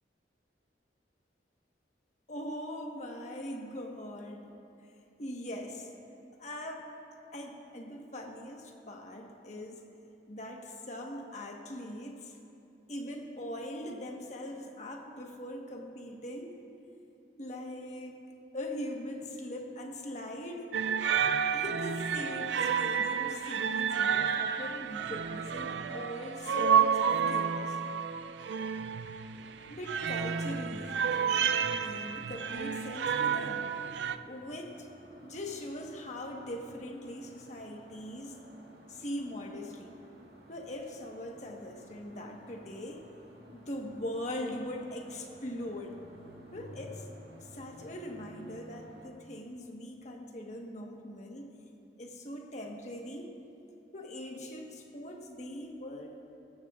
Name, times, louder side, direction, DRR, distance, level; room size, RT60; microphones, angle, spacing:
voice 1, 2.3-4.5 5.2-5.9 6.4-6.9 7.3-9.8 10.3-12.4 12.9-16.6 17.4-18.2 18.5-20.7 21.5-27.8 29.7-33.7 34.3-34.9 35.2-38.4 38.9-40.0 40.5-43.0 43.5-45.9 46.5-47.1 47.5-51.5 52.0-53.4 53.9-56.2, left 1 dB, 40° left, 1 dB, 1.3 m, -41 dB
sound 1, 20.7-34.2, right 7 dB, 80° right, 0.4 m, -30 dB
sound 2, 29.3-49.1, equal, 60° right, 2.2 m, -54 dB
19.5 x 16.5 x 2.5 m, 2.7 s
head